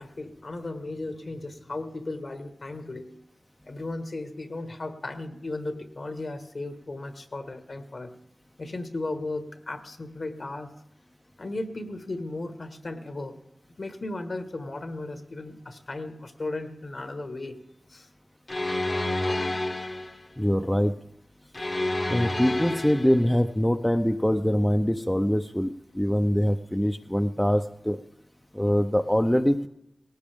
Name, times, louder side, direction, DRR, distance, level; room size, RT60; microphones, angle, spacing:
voice 1, 0.0-3.1 3.7-8.1 8.6-10.7 11.4-13.4 13.8-17.6 17.9-18.1, left 2 dB, 60° left, 6 dB, 1.6 m, -35 dB
sound 1, 18.5-20.2 21.5-23.3, left 1 dB, 40° left, 1.0 m, -29 dB
voice 2, 20.4-20.9 22.1-28.0 28.5-29.7, equal, 5° left, 6 dB, 0.6 m, -24 dB
19.0 x 17.0 x 3.6 m, 0.84 s
wide cardioid pair, 65°, 0 cm